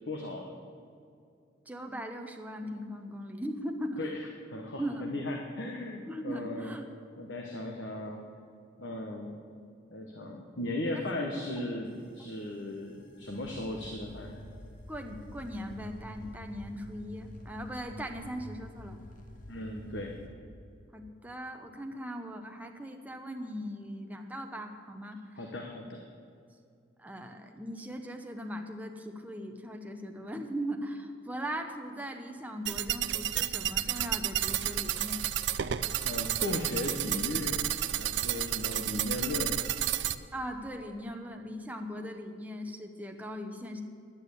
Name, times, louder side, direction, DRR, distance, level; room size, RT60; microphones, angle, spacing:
voice 1, 0.1-0.6 4.0-6.8 7.2-8.2 8.8-9.4 9.9-14.3 19.5-20.1 25.4-26.0 36.0-37.6 38.0-39.6, left 1 dB, 75° left, 2 dB, 1.1 m, -37 dB
voice 2, 1.7-4.1 4.8-5.1 6.1-6.9 10.9-11.0 14.9-19.0 20.9-25.2 27.0-35.2 40.3-43.8, equal, 10° right, 4 dB, 0.8 m, -39 dB
sound 1, 11.9-20.3, equal, 45° left, 1.1 m, -48 dB
sound 2, 32.7-40.2, right 12 dB, 65° right, 0.4 m, -31 dB
10.5 x 8.8 x 8.3 m, 2.4 s
head